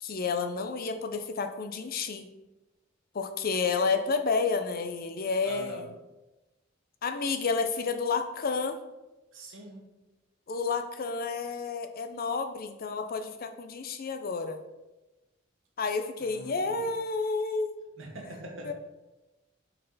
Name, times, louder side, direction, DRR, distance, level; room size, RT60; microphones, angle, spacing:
voice 1, 0.0-2.3 3.1-5.8 7.0-8.8 10.5-14.6 15.8-17.7 18.6-18.7, left 4 dB, 50° left, 8 dB, 0.6 m, -30 dB
voice 2, 5.4-5.9 9.3-9.9 16.2-16.9 18.0-18.7, right 2 dB, 80° right, 0 dB, 1.6 m, -43 dB
6.6 x 4.6 x 4.1 m, 1.0 s
head